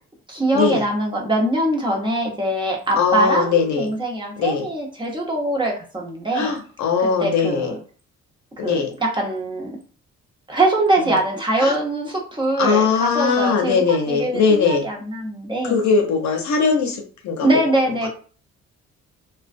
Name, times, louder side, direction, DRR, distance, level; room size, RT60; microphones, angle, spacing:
voice 1, 0.3-6.5 7.2-7.8 8.6-9.8 10.5-15.8 17.4-18.1, right 1 dB, 15° right, -1 dB, 0.8 m, -22 dB
voice 2, 3.0-3.9 4.4-4.7 6.3-7.7 8.6-8.9 11.0-11.1 11.6-11.7 12.6-14.8 15.7-17.5 18.0-18.1, left 5 dB, 70° left, 4 dB, 0.7 m, -20 dB
2.4 x 2.2 x 2.5 m, 0.40 s
cardioid pair, 90°, 30 cm